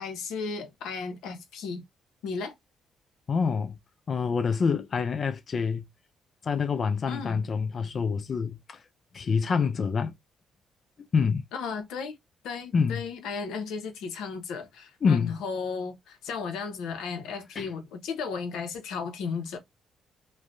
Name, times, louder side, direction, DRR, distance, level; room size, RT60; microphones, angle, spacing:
voice 1, 0.0-1.9 2.2-2.5 7.1-7.4 11.5-12.2 12.4-19.6, left 5 dB, 90° left, 0.8 m, -35 dB
voice 2, 3.3-3.8 4.1-5.8 6.4-8.8 9.1-10.1 11.1-11.4 12.7-13.0 15.0-15.4 17.6-17.7, left 5 dB, 45° left, 0.4 m, -26 dB
3.2 x 2.2 x 2.5 m
cardioid pair, 90°, 0 cm